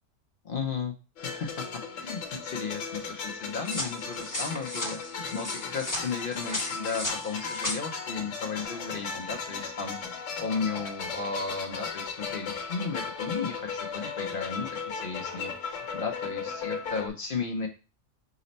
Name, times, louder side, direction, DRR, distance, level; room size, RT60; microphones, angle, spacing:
voice 1, 0.4-0.9 1.2-14.7 14.9-17.7, left 5 dB, 55° left, 3 dB, 0.7 m, -35 dB
sound 1, 1.2-17.1, left 5 dB, 70° left, 1.1 m, -36 dB
sound 2, 3.6-7.8, left 2 dB, 15° left, 1.0 m, -35 dB
4.9 x 2.1 x 3.9 m, 0.32 s
omnidirectional pair, 1.3 m